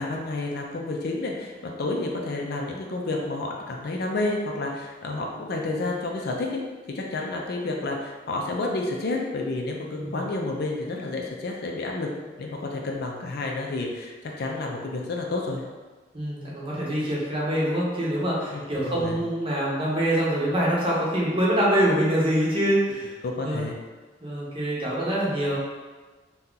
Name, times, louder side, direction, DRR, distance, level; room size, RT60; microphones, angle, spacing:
voice 1, 0.0-6.6 6.9-12.1 12.4-15.6 18.5-19.2 23.2-23.8, left 2 dB, 55° left, 0 dB, 0.4 m, -30 dB
voice 2, 16.1-23.1 23.4-23.6 24.2-25.6, right 1 dB, 30° right, -5 dB, 0.8 m, -25 dB
2.8 x 2.3 x 3.7 m, 1.3 s
head